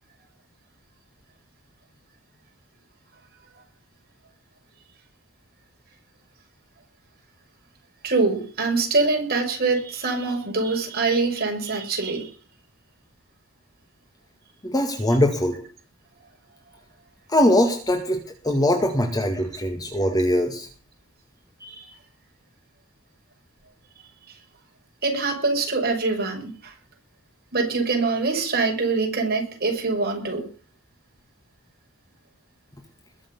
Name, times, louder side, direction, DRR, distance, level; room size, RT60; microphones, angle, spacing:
voice 1, 8.0-12.3 21.6-21.9 25.0-26.7 27.5-30.4, right 3 dB, 45° right, 1 dB, 6.5 m, -24 dB
voice 2, 14.6-15.6 17.3-20.7, left 1 dB, 20° left, 4 dB, 2.1 m, -21 dB
21.5 x 7.2 x 8.3 m, 0.40 s
head